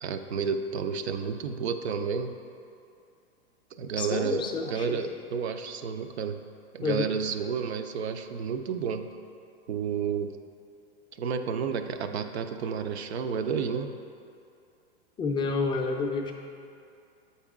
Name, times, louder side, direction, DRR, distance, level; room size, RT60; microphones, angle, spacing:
voice 1, 0.0-2.3 3.8-6.4 6.7-9.1 9.7-10.4 11.2-13.9, right 6 dB, 75° right, 8 dB, 0.6 m, -31 dB
voice 2, 4.0-5.0 6.8-7.1 15.2-16.3, left 4 dB, 15° left, 1 dB, 0.4 m, -29 dB
8.3 x 4.2 x 3.6 m, 2.5 s
hypercardioid pair, 110°, 32 cm